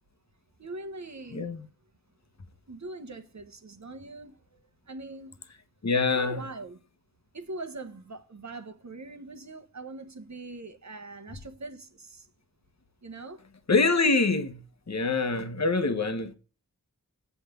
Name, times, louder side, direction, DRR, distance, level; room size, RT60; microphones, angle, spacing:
voice 1, 0.6-1.6 2.7-5.4 6.1-6.8 7.3-12.3 13.0-13.4, right 2 dB, 55° right, 1.1 m, -42 dB
voice 2, 1.3-1.7 5.8-6.4 13.7-16.4, left 3 dB, 55° left, 1.2 m, -25 dB
8.4 x 5.1 x 6.6 m
wide cardioid pair, 65°, 33 cm